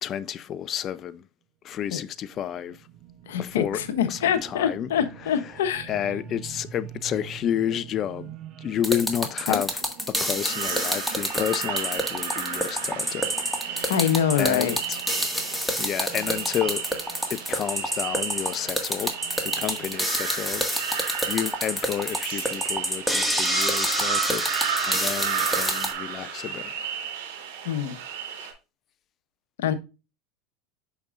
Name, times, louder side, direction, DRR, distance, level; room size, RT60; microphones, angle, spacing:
voice 1, 0.0-1.2 1.6-2.9 3.4-3.8 4.1-4.9 5.5-5.6 5.9-13.3 13.6-14.0 14.4-15.0 15.8-16.9 17.3-19.1 19.4-20.9 21.3-24.5 24.8-26.7, left 10 dB, 40° left, 0.5 m, -30 dB
sound 1, 1.8-20.2, right 9 dB, 45° right, 1.6 m, -46 dB
voice 2, 3.3-5.9 9.5-9.6 13.9-14.8 27.6-28.0 28.4-28.5 29.6-29.7, left 8 dB, 80° left, 1.1 m, -25 dB
sound 2, 8.8-25.9, equal, ahead, 1.8 m, -27 dB
sound 3, 10.2-28.5, right 7 dB, 70° right, 3.2 m, -33 dB
8.2 x 6.1 x 2.5 m
hypercardioid pair, 100°, 0 cm